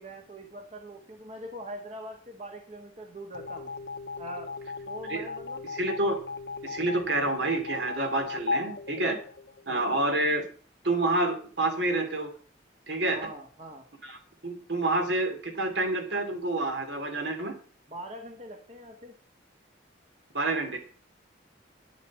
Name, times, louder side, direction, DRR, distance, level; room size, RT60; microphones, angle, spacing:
voice 1, 0.0-3.7 4.2-4.5 4.8-5.6 9.7-10.0 13.1-13.8 17.9-19.2, right 1 dB, 35° right, 2 dB, 1.7 m, -42 dB
sound 1, 3.3-9.8, left 4 dB, 65° left, 1.1 m, -37 dB
voice 2, 5.7-6.2 6.6-9.2 9.7-10.5 10.8-12.3 12.9-13.2 14.0-14.2 14.4-17.5 20.3-20.8, right 2 dB, 70° right, 5 dB, 3.2 m, -28 dB
10.0 x 8.0 x 7.7 m, 0.42 s
head